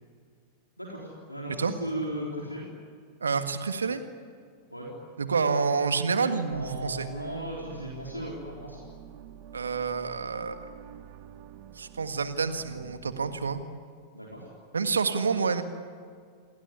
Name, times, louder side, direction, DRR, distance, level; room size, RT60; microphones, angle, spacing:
voice 1, 0.8-2.7 4.7-4.9 6.5-8.8 14.1-14.5, equal, 90° left, -3 dB, 4.0 m, -36 dB
voice 2, 3.2-4.0 5.2-7.1 9.5-10.7 11.7-13.6 14.7-15.6, right 5 dB, 75° right, 9 dB, 1.8 m, -28 dB
sound 1, 6.5-13.6, right 10 dB, 45° right, 1.5 m, -48 dB
27.5 x 20.0 x 9.9 m, 2.1 s
figure-of-eight pair, 90°, 0 cm